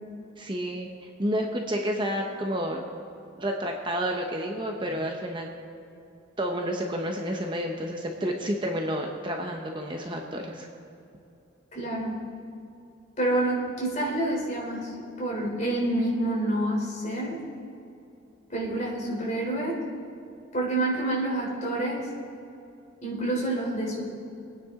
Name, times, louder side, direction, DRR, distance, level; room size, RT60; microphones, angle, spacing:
voice 1, 0.4-2.8 3.4-5.5 6.4-10.7, equal, 25° right, 1 dB, 0.9 m, -30 dB
voice 2, 11.7-12.2 13.2-17.4 18.5-19.8 20.5-22.1 23.0-24.1, right 1 dB, 40° left, -4 dB, 3.6 m, -28 dB
24.5 x 9.5 x 3.7 m, 2.7 s
head